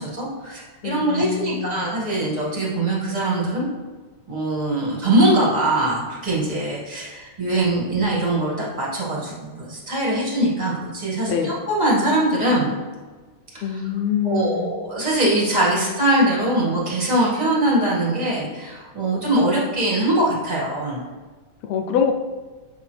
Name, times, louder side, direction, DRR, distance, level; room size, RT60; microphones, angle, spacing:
voice 1, 0.0-3.6 4.3-12.7 14.2-21.0, right 1 dB, 20° right, -6 dB, 1.3 m, -22 dB
voice 2, 0.8-1.9 11.2-11.6 13.6-14.7 21.6-22.1, left 7 dB, 75° left, 5 dB, 1.6 m, -25 dB
7.1 x 5.5 x 3.3 m, 1.4 s
omnidirectional pair, 3.5 m